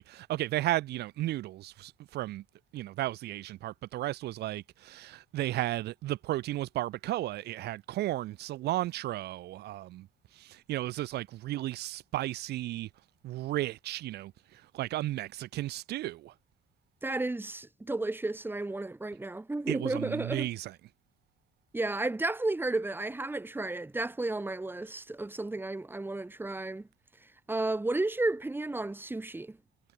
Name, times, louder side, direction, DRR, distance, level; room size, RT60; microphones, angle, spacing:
voice 1, 0.0-2.4 2.7-10.1 10.3-12.9 13.2-16.3 19.7-20.7, right 15 dB, 75° right, 2.8 m, -34 dB
voice 2, 17.0-20.5 21.7-26.9 27.5-29.6, right 2 dB, 10° right, 6.1 m, -32 dB
cardioid pair, 110°, 17 cm